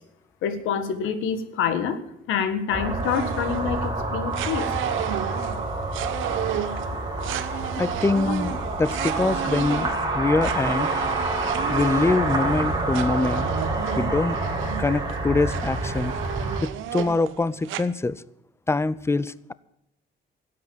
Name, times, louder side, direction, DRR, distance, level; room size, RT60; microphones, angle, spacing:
voice 1, 0.4-2.0 2.3-4.7 12.3-12.4, left 7 dB, 90° left, 10 dB, 1.6 m, -27 dB
sound 1, 2.7-16.6, right 2 dB, 20° right, 4.0 m, -28 dB
sound 2, 3.0-3.9 4.3-17.8, right 11 dB, 85° right, 0.9 m, -33 dB
voice 2, 7.8-9.9 10.1-10.9 11.7-13.5 14.0-14.4 14.8-16.1 16.6-18.2 18.7-19.5, left 3 dB, 15° left, 19 dB, 0.6 m, -24 dB
12.5 x 8.6 x 9.1 m, 0.74 s
cardioid pair, 90°, 20 cm